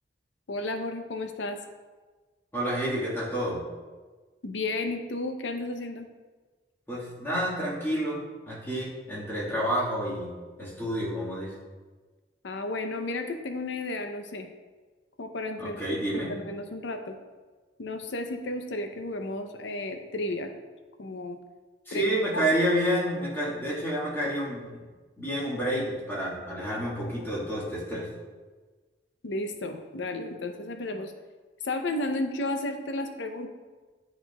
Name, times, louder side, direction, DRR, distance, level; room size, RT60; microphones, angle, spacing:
voice 1, 0.5-1.6 4.4-6.1 12.4-14.5 15.2-15.8 16.3-17.2 17.8-20.5 21.0-21.4 21.9-22.5 29.2-31.1 31.6-33.5, left 2 dB, 80° left, 6 dB, 0.6 m, -33 dB
voice 2, 2.5-3.6 6.9-10.3 10.6-11.5 15.6-16.3 21.8-24.6 25.2-28.1, equal, 10° left, -8 dB, 1.6 m, -29 dB
10.0 x 4.4 x 2.3 m, 1.3 s
head